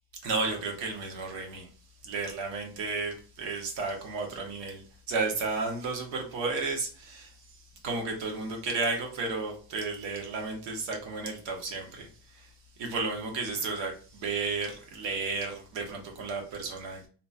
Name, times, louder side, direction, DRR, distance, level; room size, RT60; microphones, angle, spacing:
voice 1, 0.2-1.7 2.0-12.5 12.8-17.1, right 3 dB, 75° right, 2 dB, 1.1 m, -33 dB
2.9 x 2.3 x 2.5 m, 0.41 s
cardioid pair, 145°, 46 cm